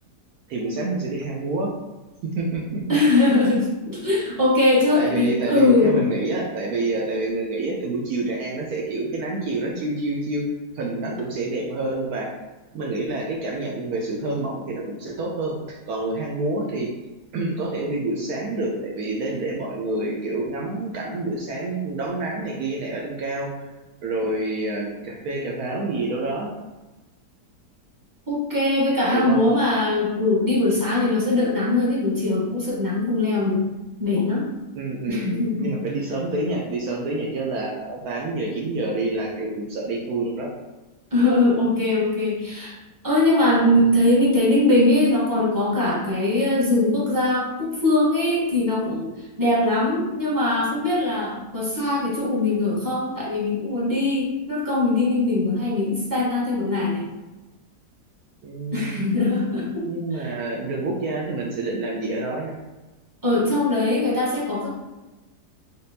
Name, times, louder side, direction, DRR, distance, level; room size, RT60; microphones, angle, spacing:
voice 1, 0.5-1.7 2.3-2.8 3.2-3.3 4.9-10.4 10.7-12.3 12.7-16.9 17.3-23.5 24.0-26.5 29.1-29.4 34.7-40.5 43.8-44.0 58.4-59.0 59.8-62.6, right 2 dB, 70° right, -2 dB, 1.0 m, -28 dB
voice 2, 2.9-6.0 28.3-33.6 34.0-34.5 35.1-35.8 41.1-42.8 43.0-57.1 58.7-60.4 63.2-64.7, left 2 dB, 15° right, -7 dB, 0.9 m, -21 dB
4.1 x 3.4 x 2.7 m, 1.1 s
omnidirectional pair, 1.8 m